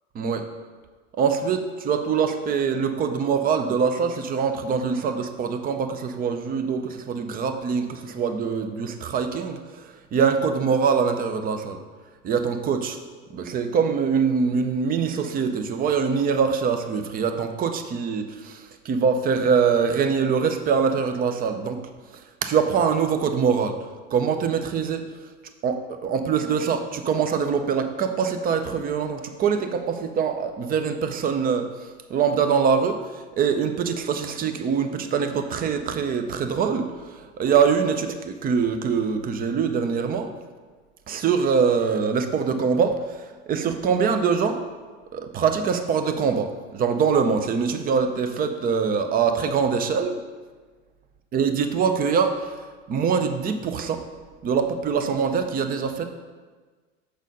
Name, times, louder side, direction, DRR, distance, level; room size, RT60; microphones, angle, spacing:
voice 1, 1.1-11.8 12.2-13.0 13.3-21.8 22.4-23.8 24.1-25.1 25.6-31.7 32.1-40.3 41.1-44.6 45.1-50.2 51.3-52.6 52.9-54.0 54.4-56.0, right 6 dB, 25° right, 7 dB, 0.5 m, -23 dB
6.4 x 4.1 x 5.3 m, 1.4 s
hypercardioid pair, 110°, 37 cm